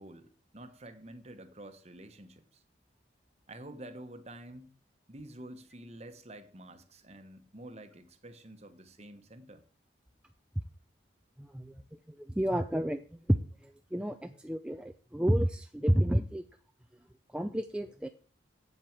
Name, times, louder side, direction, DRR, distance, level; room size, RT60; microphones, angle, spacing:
voice 1, 0.0-2.6 3.5-4.7 5.1-9.6, right 1 dB, 35° right, 1.1 m, -49 dB
voice 2, 11.4-11.8 12.1-16.4 17.3-18.1, equal, 5° right, 0.4 m, -30 dB
8.6 x 7.7 x 7.3 m
head